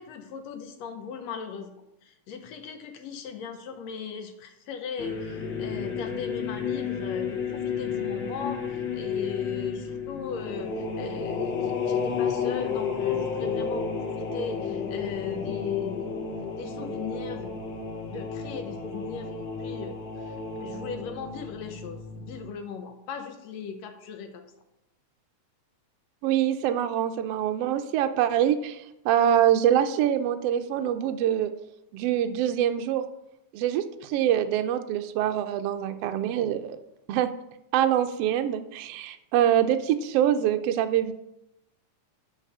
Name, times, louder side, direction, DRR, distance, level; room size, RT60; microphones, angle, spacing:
voice 1, 0.0-1.8 2.0-16.2 16.6-17.6 18.1-24.5, left 6 dB, 70° left, 6 dB, 1.9 m, -38 dB
sound 1, 5.0-22.4, left 6 dB, 55° left, 1.4 m, -32 dB
voice 2, 26.2-31.5 31.9-33.0 33.5-36.8 37.1-37.3 37.7-41.1, right 10 dB, 85° right, 8 dB, 1.3 m, -24 dB
9.9 x 4.1 x 6.6 m, 0.87 s
omnidirectional pair, 3.4 m